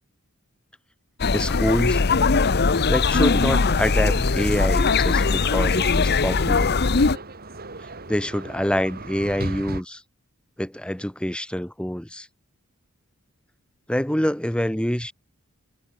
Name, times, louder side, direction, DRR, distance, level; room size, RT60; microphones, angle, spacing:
sound 1, 1.2-7.2, left 4 dB, 50° left, 0.9 m, -20 dB
voice 1, 1.3-2.0 2.9-6.8 8.1-10.0 10.6-12.3 13.9-15.1, equal, 5° left, 1.5 m, -26 dB
sound 2, 3.1-9.8, right 2 dB, 45° right, 4.1 m, -38 dB
head